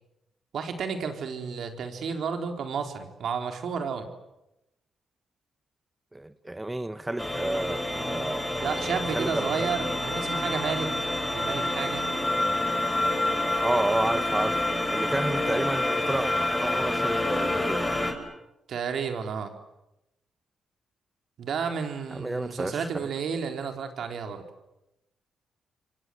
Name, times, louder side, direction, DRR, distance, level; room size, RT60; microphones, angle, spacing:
voice 1, 0.5-4.1 8.6-10.9 11.3-12.1 18.7-19.6 21.4-24.4, right 6 dB, 70° right, 4.3 m, -32 dB
voice 2, 6.1-8.6 9.1-9.7 13.6-18.0 22.1-22.9, right 1 dB, 15° right, 1.2 m, -31 dB
sound 1, 7.2-18.1, left 1 dB, 10° left, 6.5 m, -28 dB
29.5 x 25.0 x 8.0 m
cardioid pair, 75°, 0 cm